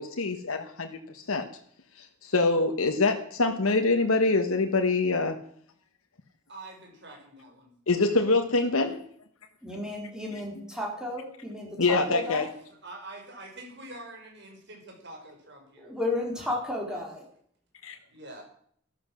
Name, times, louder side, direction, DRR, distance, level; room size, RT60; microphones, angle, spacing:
voice 1, 0.0-1.5 2.0-5.4 7.9-9.0 11.8-12.5 17.8-18.0, left 3 dB, 85° left, 5 dB, 1.3 m, -25 dB
voice 2, 6.5-7.7 8.2-8.8 12.3-12.4 12.7-16.1 16.3-16.5 16.9-17.1 18.1-18.4, right 2 dB, 55° right, 2 dB, 5.1 m, -46 dB
voice 3, 9.6-12.5 15.8-17.2, left 2 dB, 5° right, -1 dB, 4.1 m, -33 dB
13.5 x 13.0 x 6.2 m, 0.63 s
head